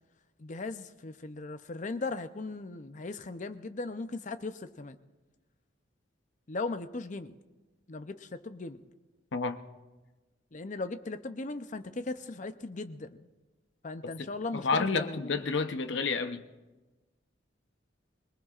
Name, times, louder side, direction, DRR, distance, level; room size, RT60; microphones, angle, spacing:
voice 1, 0.4-5.0 6.5-7.4 7.9-8.9 10.5-13.3 13.8-15.3, left 3 dB, 40° left, 0.6 m, -38 dB
voice 2, 14.2-16.4, left 4 dB, 70° left, 0.8 m, -30 dB
25.0 x 19.5 x 2.5 m
head